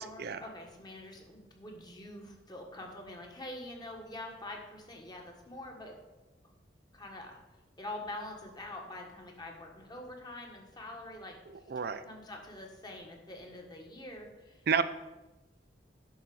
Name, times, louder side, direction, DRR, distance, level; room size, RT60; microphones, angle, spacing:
voice 1, 0.0-6.0 6.9-7.4 7.8-11.3 12.0-14.8, left 1 dB, 25° left, 1 dB, 1.6 m, -45 dB
voice 2, 11.7-12.0 14.7-14.8, right 6 dB, 60° right, 13 dB, 0.5 m, -29 dB
11.0 x 4.1 x 6.3 m, 1.1 s
head